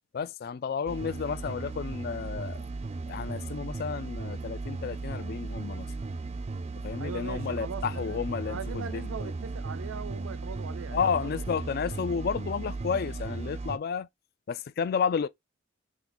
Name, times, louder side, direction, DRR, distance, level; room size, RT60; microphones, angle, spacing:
voice 1, 0.1-2.6 3.1-5.9 6.8-9.3 10.9-14.1 14.5-15.3, left 6 dB, 50° left, 0.3 m, -32 dB
sound 1, 0.9-13.8, right 3 dB, 30° right, 0.3 m, -36 dB
voice 2, 7.0-8.2 8.5-11.4, right 5 dB, 85° right, 0.5 m, -40 dB
3.7 x 2.9 x 3.0 m
head